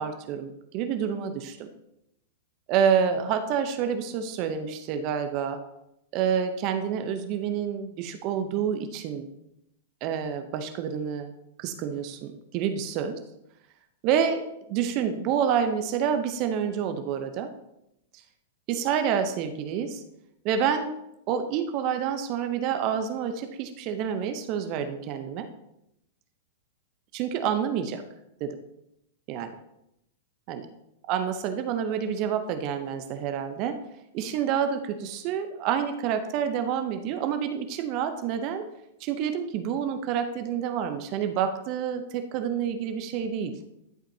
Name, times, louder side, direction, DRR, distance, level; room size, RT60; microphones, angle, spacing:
voice 1, 0.0-1.7 2.7-5.6 6.1-9.3 10.0-11.3 11.6-13.2 14.0-14.4 14.7-17.5 18.1-18.2 18.7-20.0 20.4-20.9 21.3-25.5 27.1-28.0 28.4-28.5 29.3-29.5 30.5-30.7 31.1-33.8 34.1-38.7 39.0-43.6, right 8 dB, 45° right, 8 dB, 0.7 m, -28 dB
11.5 x 5.1 x 2.8 m, 0.83 s
hypercardioid pair, 105°, 0 cm